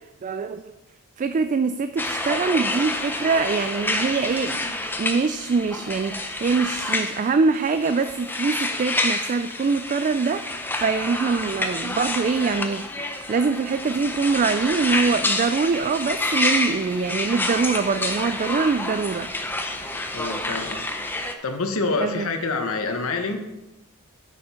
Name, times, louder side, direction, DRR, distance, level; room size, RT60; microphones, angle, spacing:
voice 1, 0.2-0.7 1.2-4.7 5.0-12.9 13.3-19.3 22.0-22.3, right 4 dB, 35° right, 10 dB, 0.3 m, -24 dB
sound 1, 2.0-21.3, left 2 dB, 10° left, 0.6 m, -28 dB
voice 2, 20.1-20.8 21.4-23.5, left 3 dB, 65° left, 5 dB, 1.1 m, -26 dB
8.9 x 6.8 x 4.4 m, 0.98 s
head